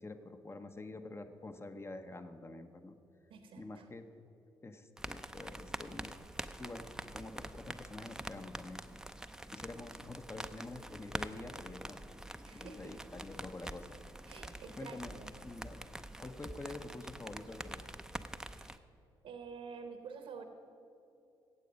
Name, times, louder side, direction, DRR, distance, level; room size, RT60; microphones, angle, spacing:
voice 1, 0.0-2.9 3.6-4.2 4.6-6.2 6.6-6.8 7.1-8.8 9.5-12.0 12.5-14.0 14.8-15.2 15.4-15.8 16.2-18.0, left 2 dB, 25° left, 8 dB, 0.9 m, -47 dB
voice 2, 3.3-3.9 12.4-12.9 14.3-15.3 18.6-18.8 19.2-20.4, right 5 dB, 70° right, 6 dB, 1.1 m, -49 dB
sound 1, 5.0-18.8, right 1 dB, 5° right, 0.6 m, -46 dB
15.5 x 8.5 x 5.3 m, 2.8 s
hypercardioid pair, 50°, 10 cm